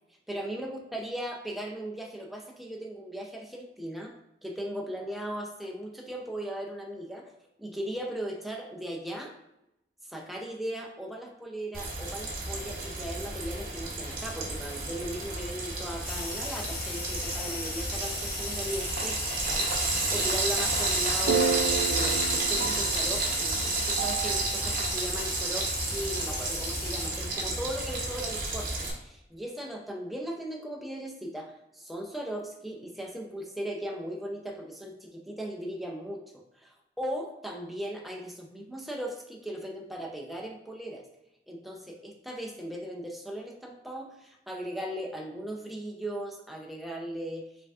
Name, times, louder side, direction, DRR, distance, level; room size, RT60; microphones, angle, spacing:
voice 1, 0.3-4.1 4.4-7.3 7.6-9.3 10.1-36.2 36.6-41.0 41.5-47.5, equal, ahead, 0 dB, 0.5 m, -38 dB
Frying (food), 11.7-28.9, right 2 dB, 50° right, 0.9 m, -31 dB
sound 1, 16.0-27.1, left 2 dB, 80° left, 1.4 m, -37 dB
sound 2, 21.3-24.8, right 6 dB, 85° right, 0.4 m, -31 dB
5.0 x 3.5 x 2.4 m, 0.85 s
head